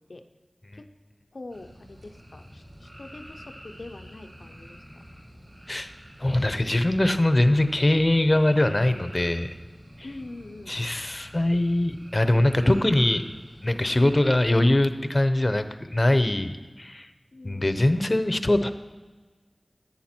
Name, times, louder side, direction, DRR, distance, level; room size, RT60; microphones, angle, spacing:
voice 1, 1.3-4.8 10.0-10.7 17.3-18.0, left 2 dB, 75° left, 6 dB, 0.8 m, -43 dB
sound 1, 1.5-14.4, equal, 65° right, 3.7 m, -47 dB
voice 2, 6.2-9.6 10.7-13.2 13.6-15.6 15.9-17.1 17.4-18.7, left 1 dB, 40° left, 10 dB, 0.8 m, -22 dB
15.0 x 9.2 x 4.4 m, 1.3 s
wide cardioid pair, 50°, 0 cm